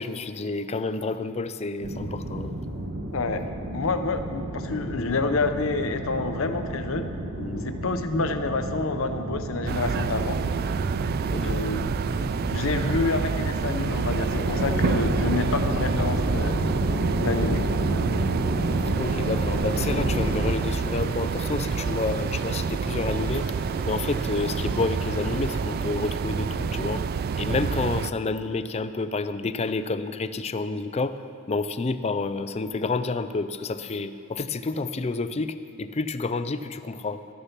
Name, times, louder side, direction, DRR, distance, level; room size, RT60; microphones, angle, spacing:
voice 1, 0.0-2.6 7.4-7.7 11.3-11.5 19.0-23.5 23.8-27.0 27.4-31.2 31.5-37.2, left 3 dB, 30° left, 11 dB, 0.4 m, -29 dB
sound 1, 1.8-20.5, right 1 dB, 85° right, 1.3 m, -30 dB
voice 2, 3.1-3.4 3.7-7.1 7.6-10.4 11.3-11.9 12.5-16.6 17.2-17.6, left 3 dB, 65° left, 7 dB, 0.8 m, -28 dB
sound 2, 9.7-28.1, right 5 dB, 45° right, 0.3 m, -28 dB
sound 3, 19.0-25.6, equal, 5° left, 1.2 m, -42 dB
13.0 x 9.8 x 5.8 m, 2.7 s
head